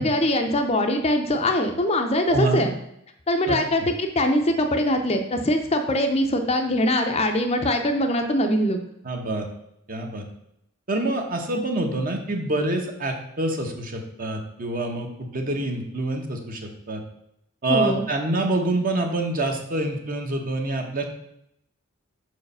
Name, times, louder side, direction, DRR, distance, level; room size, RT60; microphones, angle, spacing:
voice 1, 0.0-2.8 3.3-8.8 17.7-18.0, left 1 dB, 25° left, 5 dB, 0.5 m, -22 dB
voice 2, 2.3-2.6 3.5-3.6 9.0-9.5 9.9-10.2 10.9-17.0 17.6-21.0, right 2 dB, 40° right, 3 dB, 1.0 m, -26 dB
5.8 x 4.8 x 5.4 m, 0.77 s
head